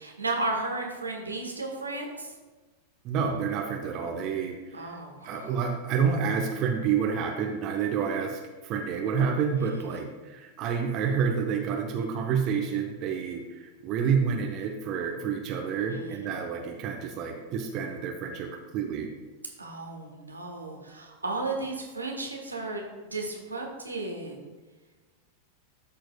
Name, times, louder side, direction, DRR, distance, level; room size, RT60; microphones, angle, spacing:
voice 1, 0.0-2.3 4.7-5.6 9.6-10.0 15.9-16.3 19.6-22.8 23.1-24.5, right 2 dB, 80° right, 1 dB, 1.1 m, -34 dB
voice 2, 3.0-5.0 5.2-19.1, right 6 dB, 40° right, 3 dB, 0.7 m, -29 dB
12.0 x 4.5 x 2.3 m, 1.3 s
figure-of-eight pair, 90°, 0 cm